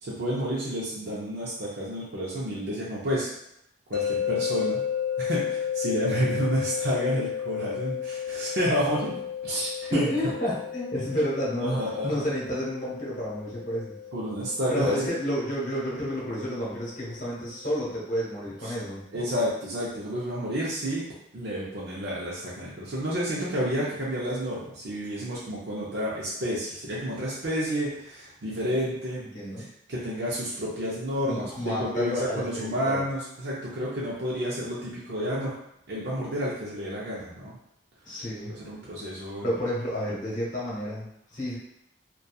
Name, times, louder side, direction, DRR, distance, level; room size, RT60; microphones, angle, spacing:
voice 1, 0.0-3.3 3.9-4.8 5.2-10.1 11.6-12.3 14.1-15.0 18.6-18.7 19.1-21.0 21.3-29.2 29.9-35.5 35.9-37.6 38.5-39.5, equal, 60° right, -7 dB, 0.5 m, -30 dB
sound 1, 3.9-17.0, left 8 dB, 75° left, 0.4 m, -33 dB
voice 2, 9.9-13.9 14.7-19.0 29.2-29.6 31.3-33.0 38.0-38.6 39.4-41.6, equal, 45° left, -6 dB, 1.0 m, -30 dB
2.7 x 2.3 x 2.3 m, 0.78 s
head